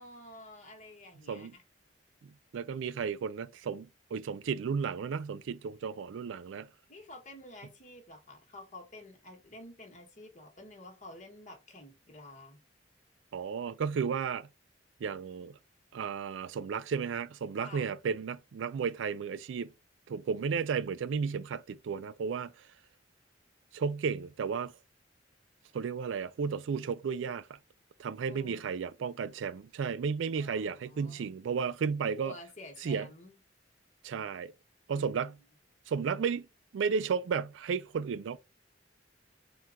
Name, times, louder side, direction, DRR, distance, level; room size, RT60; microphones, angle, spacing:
voice 1, 0.0-1.6 6.9-12.6 17.6-17.9 28.3-28.7 30.3-31.3 32.2-33.3 34.9-35.3, left 2 dB, 45° left, 1.5 m, -50 dB
voice 2, 2.2-6.7 13.3-14.5 15.0-15.6 15.9-19.7 20.1-22.7 23.7-24.7 25.7-27.6 28.0-32.3 32.8-33.1 34.0-34.5 34.9-35.4 35.9-36.5 36.7-38.4, right 6 dB, 85° right, 0.4 m, -33 dB
4.5 x 2.4 x 3.6 m
head